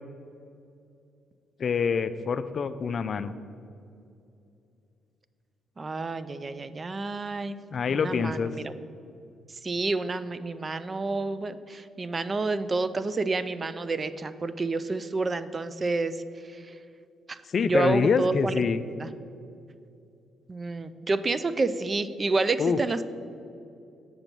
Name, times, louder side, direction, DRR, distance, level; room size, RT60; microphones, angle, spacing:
voice 1, 1.6-3.3 7.7-8.5 17.5-18.8 22.6-22.8, left 5 dB, 50° left, 12 dB, 0.4 m, -26 dB
voice 2, 5.8-7.6 7.9-8.7 9.6-16.8 17.3-17.4 17.6-18.6 19.0-19.1 20.5-23.1, right 3 dB, 30° right, 13 dB, 0.3 m, -29 dB
7.0 x 5.2 x 6.0 m, 2.6 s
cardioid pair, 90°, 0 cm